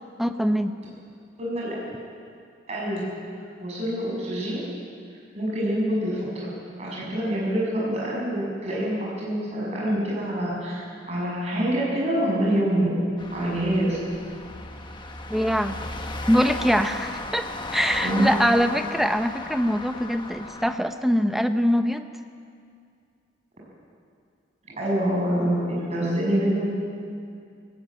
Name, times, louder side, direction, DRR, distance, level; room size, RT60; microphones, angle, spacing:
voice 1, 0.2-0.7 15.3-15.8 16.3-17.5 17.7-22.1, equal, ahead, 8 dB, 0.7 m, -23 dB
voice 2, 1.4-1.8 2.7-3.0 3.6-4.6 5.3-6.5 6.8-12.9 13.3-14.0 18.0-18.3 24.8-26.7, right 1 dB, 35° right, -5 dB, 6.9 m, -26 dB
sound 1, 13.2-20.8, left 2 dB, 25° left, 1.2 m, -35 dB
18.5 x 17.0 x 9.0 m, 2.3 s
head